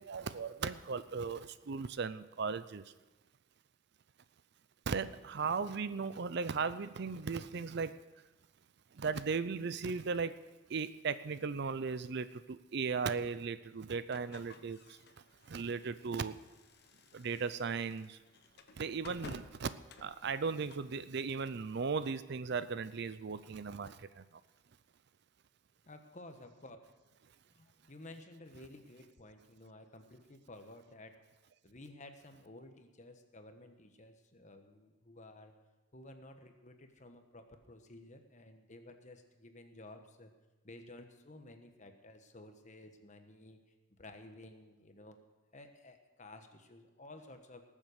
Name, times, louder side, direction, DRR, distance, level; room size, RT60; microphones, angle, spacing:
voice 1, 0.0-2.8 4.9-8.0 8.9-10.4 10.7-15.0 15.5-16.3 17.1-18.2 18.8-19.7 20.0-24.2, right 5 dB, 60° right, 14 dB, 0.5 m, -37 dB
sound 1, 14.1-20.9, left 3 dB, 55° left, 1.0 m, -56 dB
voice 2, 25.9-26.8 27.5-31.2 31.6-35.5 35.9-40.3 40.6-43.6 44.0-45.2 45.5-47.6, left 2 dB, 40° left, 6 dB, 1.2 m, -54 dB
19.0 x 7.4 x 6.6 m, 1.1 s
head